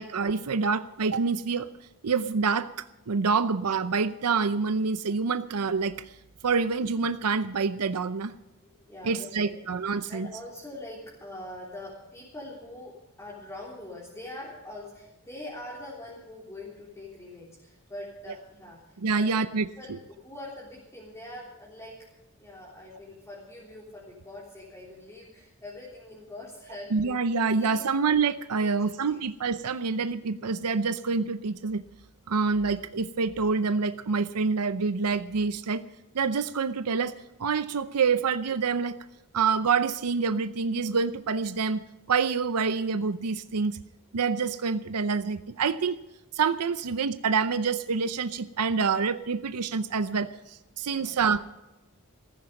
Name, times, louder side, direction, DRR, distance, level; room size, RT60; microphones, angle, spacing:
voice 1, 0.0-1.7 2.0-6.0 6.4-8.3 9.0-10.3 19.0-19.7 26.9-31.8 32.3-35.9 36.1-37.1 37.4-39.0 39.3-41.8 42.1-43.8 44.1-46.0 46.3-51.4, right 5 dB, 90° right, 12 dB, 0.7 m, -27 dB
voice 2, 8.8-9.5 9.9-19.4 19.8-22.0 22.4-26.9 27.6-27.9 28.6-29.2 50.9-51.2, left 1 dB, 15° left, -5 dB, 3.5 m, -43 dB
15.5 x 14.5 x 5.3 m, 0.96 s
head